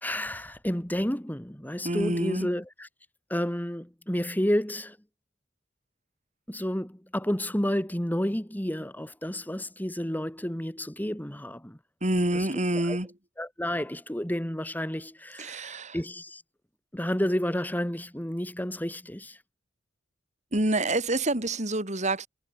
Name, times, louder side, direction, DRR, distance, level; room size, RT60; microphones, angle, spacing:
voice 1, 0.0-2.9 3.3-5.0 6.5-11.8 12.3-12.5 12.7-13.0 13.4-16.4 16.9-19.4, equal, 10° left, 1.9 m, -30 dB
voice 2, 1.8-2.5 12.0-13.1 15.4-16.0 20.5-22.3, right 2 dB, 35° right, 3.6 m, -27 dB
head